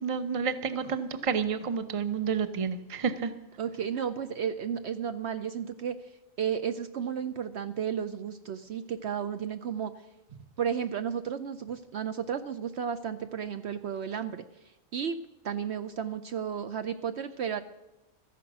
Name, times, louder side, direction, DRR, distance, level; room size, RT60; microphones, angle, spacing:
voice 1, 0.0-3.3, right 6 dB, 30° right, 10 dB, 0.7 m, -30 dB
voice 2, 3.6-6.1 6.4-9.9 10.6-14.4 14.9-15.2 15.4-17.6, right 8 dB, 65° right, 10 dB, 0.8 m, -33 dB
14.0 x 10.5 x 6.1 m, 1.0 s
omnidirectional pair, 1.4 m